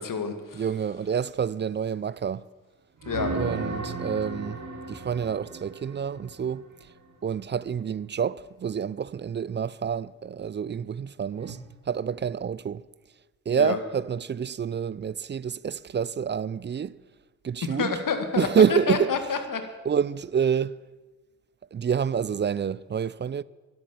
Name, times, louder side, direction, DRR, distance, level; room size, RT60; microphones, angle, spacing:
voice 1, 0.0-0.6 3.1-3.3 13.6-13.8 17.7-19.6, left 5 dB, 55° left, 2.2 m, -28 dB
voice 2, 0.5-2.5 3.3-4.6 4.9-6.7 7.2-11.6 11.9-12.8 13.5-17.0 17.4-17.9 18.4-19.1 19.8-20.8 21.7-23.4, right 7 dB, 30° right, 0.4 m, -27 dB
sound 1, 3.0-6.8 11.4-11.5, right 3 dB, 45° right, 2.4 m, -35 dB
12.0 x 11.5 x 7.2 m
hypercardioid pair, 45°, 38 cm